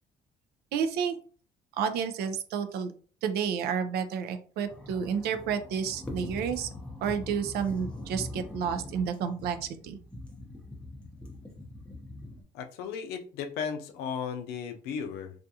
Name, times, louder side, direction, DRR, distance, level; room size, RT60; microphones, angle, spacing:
voice 1, 0.7-1.1 1.8-2.9 3.2-6.7 7.0-10.0, right 7 dB, 75° right, 9 dB, 0.4 m, -30 dB
sound 1, 4.7-12.4, left 1 dB, 5° left, 0.6 m, -42 dB
voice 2, 12.5-15.3, left 7 dB, 90° left, 7 dB, 0.4 m, -35 dB
2.4 x 2.3 x 2.7 m, 0.43 s
cardioid pair, 115°, 16 cm